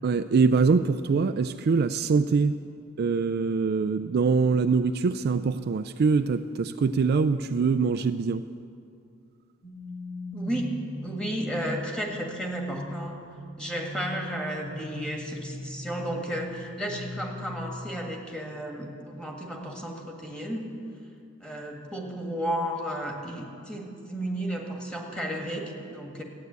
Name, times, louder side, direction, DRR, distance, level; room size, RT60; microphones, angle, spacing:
voice 1, 0.0-2.6 3.0-8.4, right 5 dB, 50° right, 9 dB, 0.4 m, -23 dB
sound 1, 9.6-17.8, left 2 dB, 60° left, 2.0 m, -40 dB
voice 2, 10.3-13.2 13.6-20.7 21.4-26.2, right 1 dB, 5° left, 1 dB, 1.8 m, -33 dB
14.0 x 9.4 x 8.1 m, 2.4 s
head